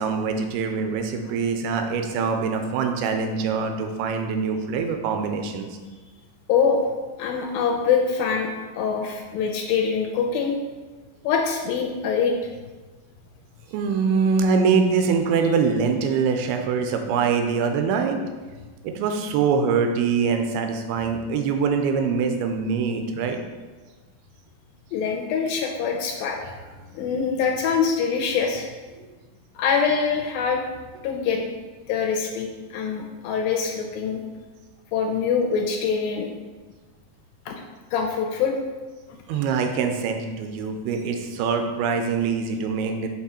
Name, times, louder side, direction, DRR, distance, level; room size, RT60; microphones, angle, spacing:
voice 1, 0.0-5.7 13.7-18.3 18.8-23.4 29.0-29.1 39.3-43.1, right 5 dB, 80° right, 5 dB, 2.5 m, -24 dB
voice 2, 6.5-6.9 7.2-10.5 11.2-12.4 24.9-26.5 26.9-28.7 29.6-30.6 31.0-31.6 31.9-34.2 34.9-36.3 37.5-37.6 37.9-38.5, left 6 dB, 80° left, 2 dB, 2.3 m, -24 dB
6.1 x 6.0 x 4.3 m, 1.3 s
omnidirectional pair, 4.6 m